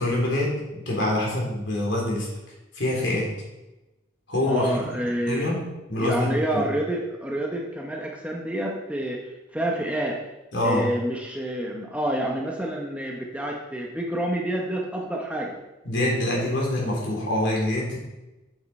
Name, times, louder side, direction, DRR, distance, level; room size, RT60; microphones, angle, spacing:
voice 1, 0.0-2.3 2.7-3.3 4.3-4.8 5.3-5.6 5.9-6.7 10.5-10.8 15.8-18.0, left 1 dB, 65° left, -3 dB, 3.6 m, -25 dB
voice 2, 4.5-5.6 6.0-10.2 10.6-15.6, right 1 dB, 5° right, -1 dB, 0.9 m, -28 dB
8.7 x 8.0 x 4.3 m, 1.0 s
head